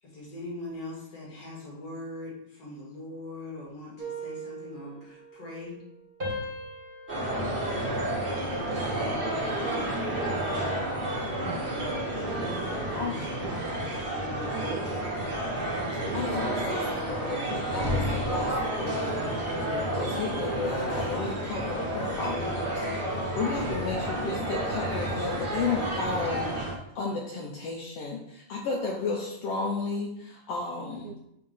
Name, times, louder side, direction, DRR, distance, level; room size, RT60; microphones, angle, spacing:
voice 1, 0.0-5.8 8.5-9.3, left 2 dB, 50° left, -4 dB, 2.6 m, -41 dB
sound 1, 4.0-5.9 6.2-8.8 9.2-9.6, right 1 dB, 25° right, 1.1 m, -40 dB
sound 2, 7.1-26.7, right 1 dB, 50° right, 0.6 m, -30 dB
voice 2, 11.4-11.9 12.2-12.7 13.4-13.5 14.5-14.9 16.0-16.2 31.0-31.2, right 7 dB, 80° right, 4 dB, 1.8 m, -40 dB
voice 3, 16.1-19.2 19.9-31.1, left 4 dB, 80° left, -1 dB, 1.4 m, -33 dB
6.7 x 2.8 x 5.5 m, 0.79 s
omnidirectional pair, 3.6 m